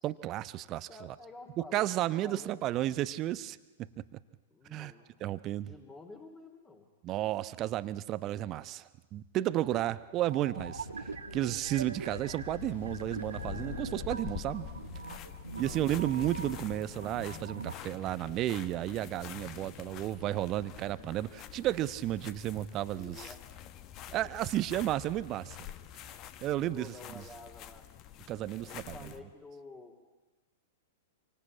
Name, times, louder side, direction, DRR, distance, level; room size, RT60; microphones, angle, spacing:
voice 1, 0.0-1.1 1.7-3.6 4.1-4.2 4.7-4.9 5.2-5.7 7.0-14.7 15.6-23.3 24.1-25.6 26.4-27.2 28.3-29.1, right 14 dB, 30° right, 15 dB, 1.0 m, -33 dB
voice 2, 0.9-1.9 2.2-2.6 4.5-5.2 5.5-6.9 15.6-15.8 23.0-23.5 26.4-27.9 28.2-28.3 28.6-30.1, left 3 dB, 15° left, 3 dB, 3.1 m, -50 dB
sound 1, 10.2-17.8, right 5 dB, 75° right, 1.7 m, -43 dB
Ocean, 10.6-16.8, left 8 dB, 55° left, 1.2 m, -46 dB
sound 2, 13.3-29.2, left 11 dB, 35° left, 1.3 m, -47 dB
26.5 x 24.5 x 8.7 m, 1.2 s
figure-of-eight pair, 100°, 0 cm